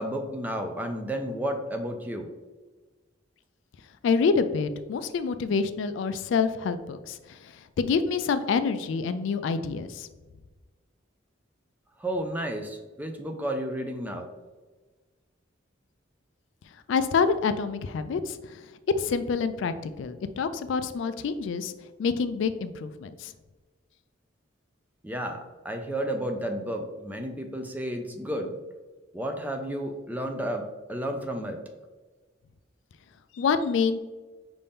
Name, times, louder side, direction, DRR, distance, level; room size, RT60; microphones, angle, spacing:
voice 1, 0.0-2.3 12.0-14.3 25.0-28.5 29.1-31.6, right 1 dB, 10° right, 4 dB, 0.4 m, -32 dB
voice 2, 4.0-7.2 7.8-10.1 16.9-18.6 19.0-21.7 22.0-23.3 33.3-34.0, left 5 dB, 70° left, 11 dB, 0.3 m, -27 dB
5.5 x 2.6 x 3.5 m, 1.3 s
head